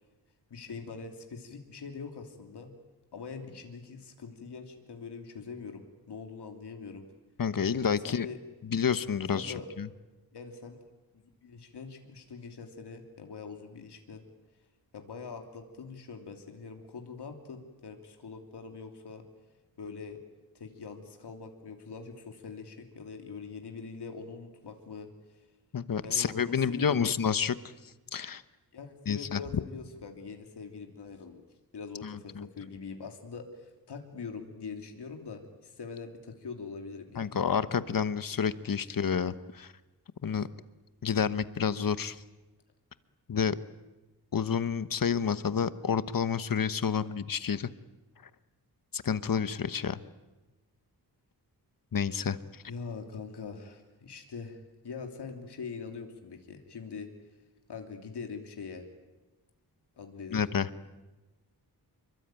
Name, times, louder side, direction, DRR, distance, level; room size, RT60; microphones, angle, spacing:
voice 1, 0.5-2.7 3.1-7.1 7.9-8.4 9.3-9.7 10.3-10.8 11.1-14.2 14.9-19.2 19.8-20.2 20.5-25.5 26.0-27.1 28.7-31.4 31.7-37.6 52.7-57.1 57.7-58.8 60.0-60.5, left 5 dB, 85° left, 4 dB, 3.1 m, -43 dB
voice 2, 7.4-8.3 8.7-9.9 25.7-27.5 28.1-28.4 29.1-29.4 32.0-32.5 37.2-39.7 40.2-40.5 41.0-42.2 43.3-43.6 44.3-47.7 48.9-50.0 51.9-52.6 60.3-60.7, left 7 dB, 55° left, 14 dB, 1.2 m, -29 dB
27.5 x 23.5 x 9.1 m, 1.1 s
wide cardioid pair, 115°, 39 cm